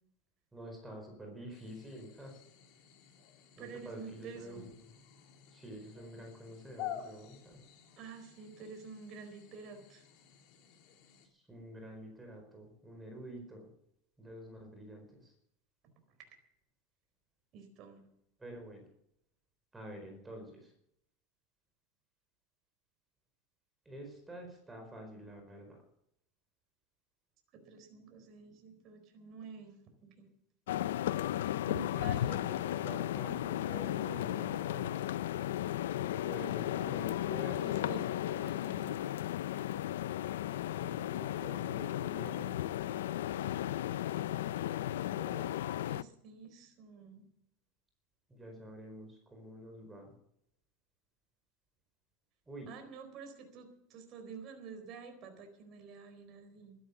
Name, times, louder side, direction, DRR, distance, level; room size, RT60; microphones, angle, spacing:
voice 1, 0.5-2.4 3.6-4.9 5.5-7.5 11.3-13.7 14.2-15.3 18.4-18.8 19.7-20.7 23.8-25.8 31.8-35.0 36.2-38.0 40.8-42.6 45.1-45.5 48.3-50.1 52.5-52.7, right 1 dB, 10° right, 3 dB, 4.6 m, -48 dB
sound 1, 1.5-11.3, left 11 dB, 55° left, 3.1 m, -50 dB
voice 2, 3.6-4.6 8.0-10.0 17.5-18.0 27.5-30.3 31.7-32.5 37.6-39.1 45.9-47.3 52.7-56.8, right 5 dB, 45° right, 5 dB, 4.2 m, -49 dB
sound 2, 30.7-46.0, left 13 dB, 90° left, 0.5 m, -35 dB
13.5 x 11.5 x 7.1 m, 0.75 s
supercardioid pair, 125°, 0 cm